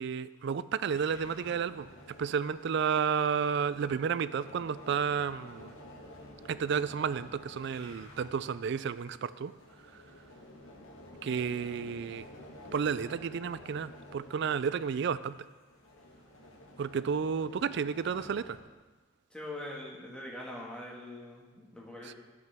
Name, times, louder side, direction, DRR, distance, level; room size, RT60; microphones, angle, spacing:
voice 1, 0.0-1.9 2.2-5.7 6.5-9.5 11.2-12.3 12.7-15.4 16.8-18.6 22.0-22.1, right 6 dB, 60° right, 15 dB, 0.3 m, -31 dB
sound 1, 0.8-18.6, left 1 dB, 85° left, 1.5 m, -51 dB
voice 2, 19.3-22.1, left 1 dB, 5° left, -3 dB, 1.7 m, -43 dB
12.5 x 8.0 x 3.5 m, 1.3 s
head